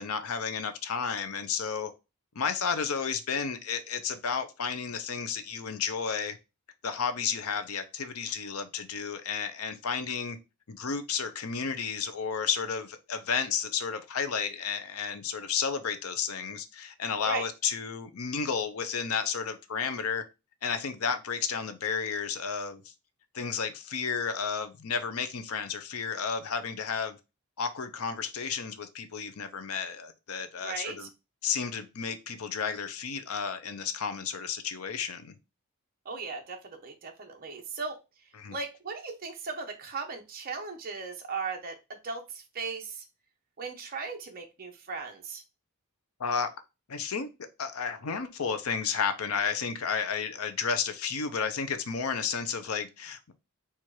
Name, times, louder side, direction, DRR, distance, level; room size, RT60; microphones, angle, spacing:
voice 1, 0.0-1.9 2.4-6.4 6.8-10.4 10.7-20.2 20.6-22.8 23.3-27.2 27.6-31.1 31.4-35.4 38.4-38.6 46.2-46.5 46.9-47.3 47.6-53.3, left 6 dB, 70° left, 0.6 m, -32 dB
voice 2, 30.6-31.1 36.1-37.9 38.5-41.8 42.0-43.0 43.6-45.4, right 4 dB, 40° right, 0.8 m, -37 dB
4.3 x 2.5 x 4.6 m
head